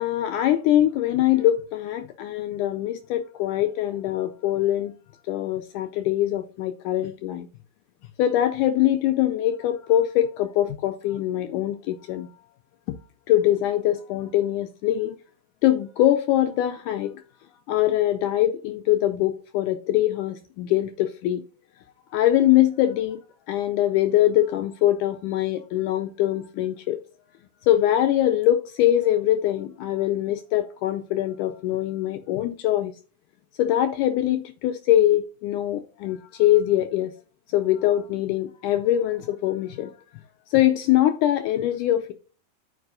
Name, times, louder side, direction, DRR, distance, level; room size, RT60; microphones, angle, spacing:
voice 1, 0.0-4.9 5.3-7.5 8.2-12.3 13.3-15.1 15.6-17.1 17.7-21.4 22.1-23.2 23.5-27.0 27.7-32.9 33.6-37.1 37.5-39.9 40.5-42.1, left 12 dB, 85° left, 1.8 m, -23 dB
12.5 x 4.7 x 2.5 m
omnidirectional pair, 4.1 m